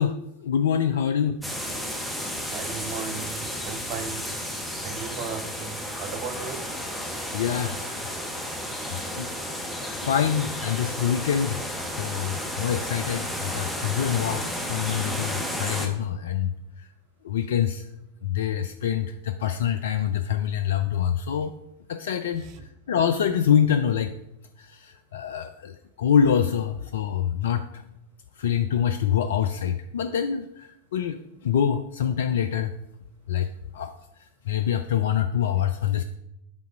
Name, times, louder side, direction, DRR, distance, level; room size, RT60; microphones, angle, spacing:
voice 1, 0.0-1.4 7.3-7.8 8.9-11.6 12.0-16.9 17.2-17.9 18.2-21.5 21.9-22.5 22.9-24.1 24.6-27.8 28.4-32.7 33.3-33.5 33.7-33.9 34.5-36.0, left 8 dB, 60° left, 9 dB, 0.3 m, -25 dB
sound 1, 1.4-15.9, equal, ahead, 1.0 m, -32 dB
voice 2, 2.5-4.3 4.8-6.7 22.4-22.6, right 6 dB, 40° right, 8 dB, 0.8 m, -36 dB
7.4 x 3.9 x 4.5 m, 0.82 s
figure-of-eight pair, 90°, 0 cm